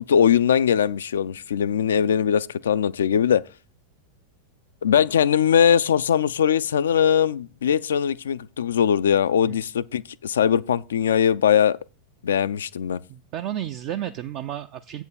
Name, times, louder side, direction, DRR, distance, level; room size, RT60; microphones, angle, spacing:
voice 1, 0.0-3.4 4.8-11.8 12.2-13.0, left 8 dB, 65° left, 0.3 m, -21 dB
voice 2, 13.1-15.0, right 11 dB, 40° right, 0.4 m, -32 dB
8.0 x 4.5 x 7.0 m
figure-of-eight pair, 90°, 0 cm